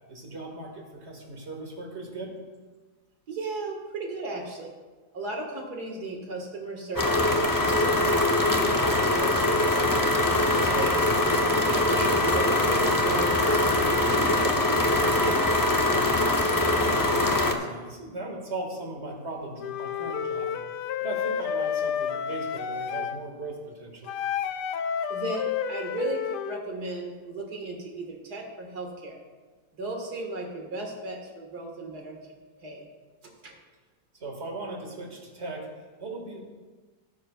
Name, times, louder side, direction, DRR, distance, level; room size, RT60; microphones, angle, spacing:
voice 1, 0.1-2.3 16.6-20.6 21.0-24.1 34.1-36.4, right 2 dB, 40° right, 0 dB, 2.2 m, -38 dB
voice 2, 3.3-4.7 5.1-8.0 8.4-10.0 10.6-15.2 25.1-29.2 29.7-32.3 32.6-32.9 33.4-33.5, right 2 dB, 65° right, 1 dB, 2.3 m, -36 dB
sound 1, 7.0-17.5, left 2 dB, 35° left, 0.3 m, -23 dB
Wind instrument woodwind instrument, 19.6-23.2 24.1-26.6, left 8 dB, 80° left, 1.2 m, -30 dB
17.5 x 9.8 x 2.4 m, 1.4 s
omnidirectional pair, 1.8 m